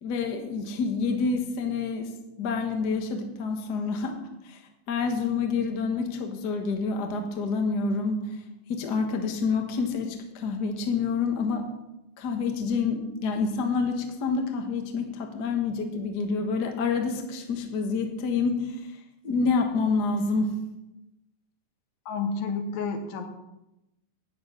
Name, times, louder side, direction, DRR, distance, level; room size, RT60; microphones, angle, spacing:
voice 1, 0.0-2.1 2.4-4.6 4.9-8.4 8.7-11.7 12.2-19.0 19.2-20.5, left 4 dB, 60° left, 4 dB, 1.0 m, -28 dB
voice 2, 22.1-23.3, left 4 dB, 75° left, 6 dB, 2.8 m, -30 dB
10.5 x 9.4 x 6.0 m, 0.94 s
omnidirectional pair, 4.1 m